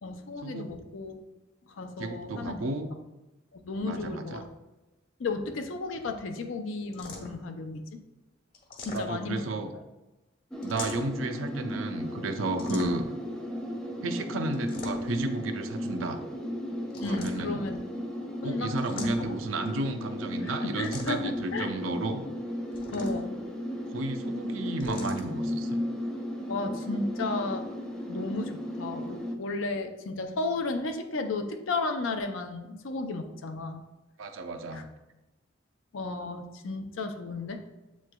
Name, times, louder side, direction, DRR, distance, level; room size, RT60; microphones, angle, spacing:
voice 1, 0.0-1.2 1.8-2.6 3.5-4.5 5.2-7.9 8.8-9.4 12.7-12.9 17.0-17.8 18.4-19.3 20.4-21.7 22.9-23.4 24.9-25.0 26.5-27.7 28.1-33.8 34.7-34.8 35.9-37.6, left 3 dB, 80° left, 6 dB, 0.5 m, -34 dB
voice 2, 2.0-2.9 3.8-4.4 8.9-9.7 10.6-13.0 14.0-16.2 17.0-17.6 18.4-22.2 23.9-25.8 34.2-34.9, right 2 dB, 85° right, 7 dB, 0.5 m, -33 dB
sound 1, 6.9-7.5 8.5-9.4 10.6-11.2 12.6-13.2 14.5-15.3 16.9-17.7 18.8-19.5 20.8-21.4 22.7-23.4 24.8-25.3, left 2 dB, 50° left, 1.0 m, -42 dB
sound 2, 10.5-29.4, left 1 dB, 5° left, 0.4 m, -35 dB
7.4 x 3.1 x 2.2 m, 1.0 s
head